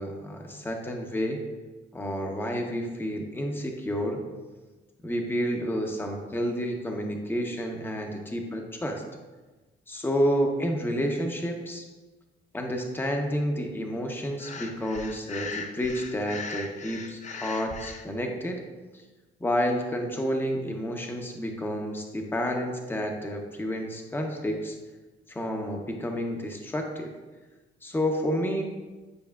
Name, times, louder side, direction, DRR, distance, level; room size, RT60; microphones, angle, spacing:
voice 1, 0.0-1.4 1.9-4.2 5.0-9.0 9.9-11.8 12.5-18.6 18.9-19.0 19.4-24.8 25.3-27.1 27.8-28.6, equal, 10° left, 2 dB, 0.8 m, -30 dB
Breathing, 14.4-18.0, left 4 dB, 35° left, 0.6 m, -39 dB
9.6 x 4.7 x 2.4 m, 1.2 s
cardioid pair, 90°, 20 cm